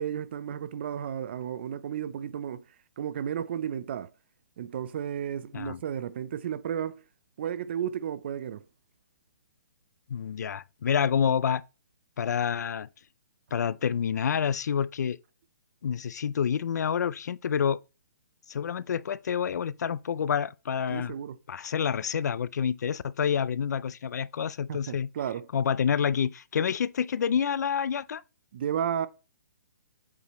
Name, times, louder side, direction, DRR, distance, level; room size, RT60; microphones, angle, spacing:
voice 1, 0.0-2.6 3.0-4.1 4.6-7.0 7.4-8.6 20.9-21.4 24.7-25.5 28.5-29.1, right 9 dB, 35° right, 0.4 m, -33 dB
voice 2, 10.1-11.6 12.2-12.9 13.5-15.2 15.8-17.8 18.5-21.1 21.5-25.1 25.5-28.2, left 7 dB, 65° left, 0.4 m, -28 dB
8.2 x 4.9 x 3.0 m
hypercardioid pair, 165°, 10 cm